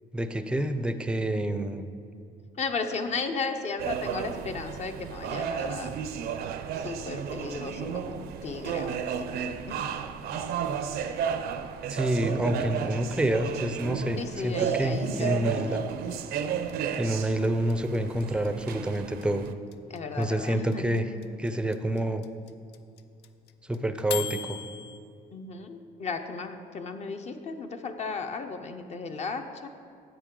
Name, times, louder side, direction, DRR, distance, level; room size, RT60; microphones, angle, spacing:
voice 1, 0.1-1.9 11.9-15.8 17.0-19.5 20.2-21.1 21.4-22.2 23.7-24.6, right 1 dB, 5° right, 9 dB, 0.5 m, -28 dB
voice 2, 2.6-5.9 6.8-9.3 9.7-9.8 14.2-15.8 19.9-21.3 25.3-29.7, left 4 dB, 40° left, 6 dB, 0.7 m, -35 dB
sound 1, 3.8-19.5, right 7 dB, 65° right, 0.5 m, -33 dB
sound 2, 16.7-25.0, left 10 dB, 75° left, 0.5 m, -37 dB
10.0 x 7.9 x 3.8 m, 2.5 s
cardioid pair, 110°, 17 cm